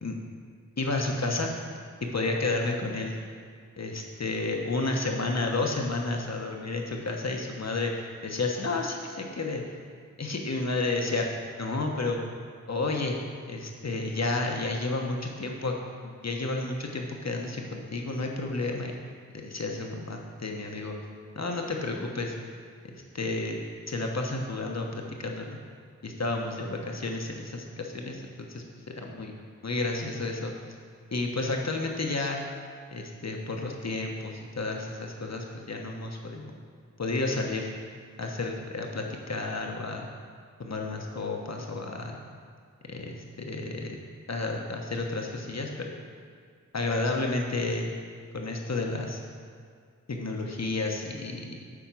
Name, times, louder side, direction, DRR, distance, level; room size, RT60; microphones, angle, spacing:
voice 1, 0.8-1.5 2.1-3.2 3.8-7.9 8.2-9.6 10.2-11.3 11.6-12.2 12.7-13.2 13.5-15.7 16.0-18.9 19.3-21.0 21.4-22.3 22.9-23.6 23.9-25.6 26.0-29.4 29.6-30.5 31.1-32.4 32.9-36.5 37.0-37.7 38.2-40.1 40.6-42.2 42.9-44.0 44.3-45.9 46.7-47.9 48.3-49.2 50.1-51.6, left 2 dB, 55° left, 1 dB, 1.1 m, -31 dB
8.6 x 4.5 x 6.1 m, 2.1 s
wide cardioid pair, 45°, 32 cm